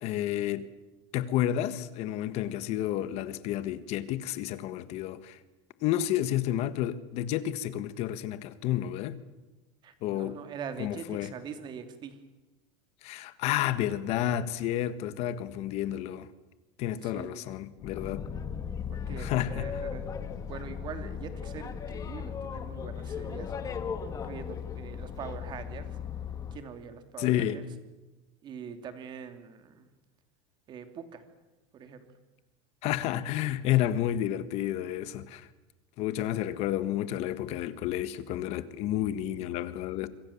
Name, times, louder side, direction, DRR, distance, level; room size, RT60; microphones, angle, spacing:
voice 1, 0.0-0.7 1.1-5.4 5.8-9.1 10.0-10.4 10.8-11.3 13.0-16.3 16.8-18.2 19.2-19.7 27.2-27.6 32.8-35.5 36.0-40.1, left 12 dB, 45° left, 1.6 m, -30 dB
voice 2, 9.8-12.2 17.0-17.5 18.9-20.0 20.5-26.0 26.5-27.7 28.4-29.9 30.7-31.2 31.7-32.1, right 7 dB, 30° right, 2.7 m, -43 dB
Boat Water vehicle, 17.8-26.6, left 7 dB, 25° left, 1.6 m, -37 dB
27.0 x 25.5 x 7.2 m
supercardioid pair, 160°, 15 cm